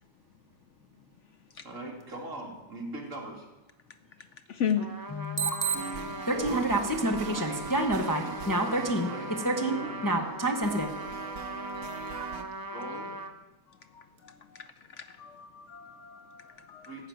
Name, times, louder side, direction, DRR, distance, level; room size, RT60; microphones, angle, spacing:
voice 1, 1.6-3.5 6.3-10.3 11.7-12.1 12.7-13.1 16.9-17.1, right 2 dB, 60° right, 2.8 m, -40 dB
voice 2, 4.5-4.9 13.9-14.7 15.0-17.0, left 8 dB, 65° left, 0.9 m, -34 dB
Trumpet, 4.8-13.3, right 1 dB, 15° right, 0.8 m, -40 dB
voice 3, 5.1-5.7 6.3-9.1 9.4-10.9 12.1-12.3, right 2 dB, 15° left, 1.0 m, -28 dB
sound 1, 5.7-12.4, right 6 dB, 80° right, 1.4 m, -41 dB
15.0 x 5.9 x 9.3 m
omnidirectional pair, 1.5 m